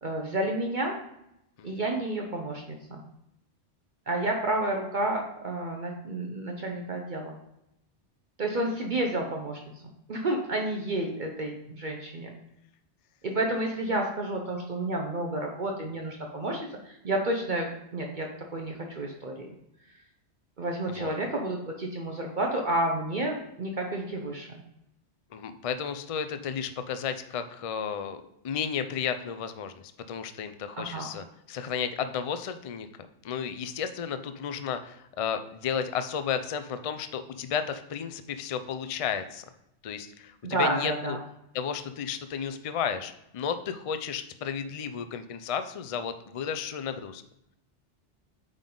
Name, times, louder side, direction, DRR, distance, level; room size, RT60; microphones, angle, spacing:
voice 1, 0.0-1.0 1.6-3.0 4.1-7.4 8.4-9.6 10.1-12.4 13.2-19.5 20.6-24.6 30.8-31.1 40.4-41.2, right 1 dB, 45° right, 1 dB, 0.8 m, -30 dB
voice 2, 25.3-32.9 33.2-39.4 39.8-41.2 41.5-47.2, left 7 dB, 60° left, 9 dB, 0.3 m, -33 dB
8.8 x 3.7 x 3.8 m, 0.80 s
omnidirectional pair, 1.2 m